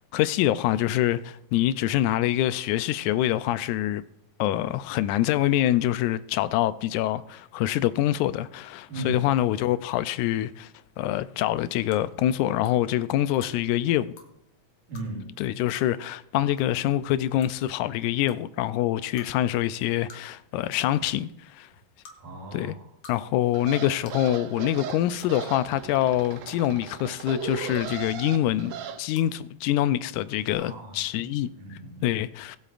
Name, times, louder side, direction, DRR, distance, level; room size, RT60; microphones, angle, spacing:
voice 1, 0.1-4.0 4.4-10.7 11.0-14.1 15.4-21.7 22.5-22.8 23.1-28.7 29.0-31.5 32.0-32.6, left 13 dB, 80° left, 2.0 m, -25 dB
voice 2, 8.9-9.2 14.9-15.3 22.2-22.9 30.6-31.2 31.6-32.1, right 2 dB, 65° right, 3.9 m, -37 dB
sound 1, 11.9-12.0 12.6-12.8 13.3-13.5 14.1-14.3 14.9-15.1 15.7-15.9 16.6-16.7 16.9-17.0 17.4-17.6 18.3-18.4 19.2-19.3 20.1-20.4 20.7-21.0 22.0-22.2 22.8-23.2 23.4-23.5 24.1-24.2 25.1-25.3 26.2-26.6 27.7-28.1 29.1-29.3 30.5-30.6, left 4 dB, 55° left, 2.0 m, -48 dB
sound 2, 23.5-29.0, right 7 dB, 85° right, 2.3 m, -37 dB
20.5 x 8.2 x 2.5 m
omnidirectional pair, 3.5 m